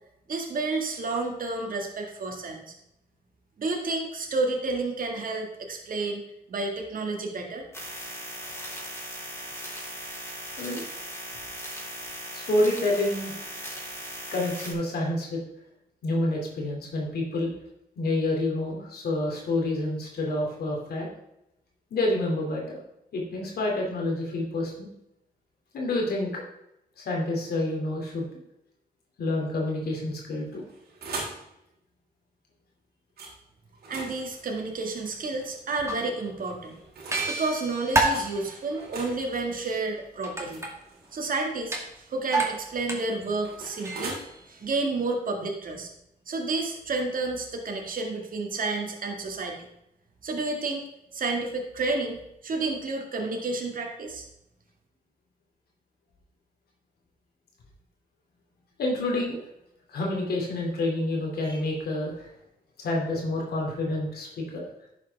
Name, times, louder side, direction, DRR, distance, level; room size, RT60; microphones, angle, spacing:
voice 1, 0.3-2.7 3.6-6.2 6.5-7.7 33.9-36.8 37.3-40.6 41.1-44.2 44.5-45.9 46.3-49.7 50.2-50.9 51.1-54.3, right 3 dB, 60° right, 2 dB, 2.0 m, -30 dB
sound 1, 7.7-14.7, equal, 15° left, 3.9 m, -38 dB
voice 2, 12.3-13.3 14.3-15.4 16.0-17.5 18.0-21.1 21.9-22.8 23.1-24.9 25.7-26.4 27.0-28.3 29.2-30.6 58.8-59.4 59.9-62.3 62.8-64.7, left 2 dB, 90° left, -1 dB, 2.7 m, -28 dB
sound 2, 30.5-31.5 33.2-33.3 33.7-35.6 36.4-37.4 38.1-38.3 38.7-41.4 42.5-44.2, right 3 dB, 90° right, 2.8 m, -41 dB
sound 3, 34.2-34.3 35.1-35.2 35.7-36.0 36.4-36.5 37.1-38.7 40.2-41.1 41.6-41.9 42.3-43.1 43.5-44.6, right 2 dB, 20° right, 2.2 m, -28 dB
11.0 x 7.2 x 3.5 m, 0.83 s
cardioid pair, 85°, 16 cm